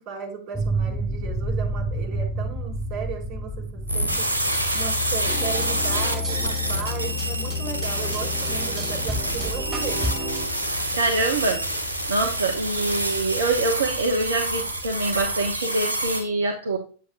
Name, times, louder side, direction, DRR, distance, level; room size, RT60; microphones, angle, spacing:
voice 1, 0.0-4.3 4.7-10.1, right 7 dB, 40° right, 0 dB, 2.5 m, -35 dB
sound 1, 0.5-15.6, left 1 dB, 5° right, 2.7 m, -32 dB
sound 2, 3.9-16.2, right 1 dB, 90° left, 1.4 m, -27 dB
sound 3, 5.3-10.5, right 1 dB, 20° right, 1.8 m, -33 dB
voice 2, 10.9-11.6 12.1-16.8, right 2 dB, 65° right, 3 dB, 0.9 m, -25 dB
7.9 x 7.7 x 2.5 m, 0.38 s
figure-of-eight pair, 90°, 0 cm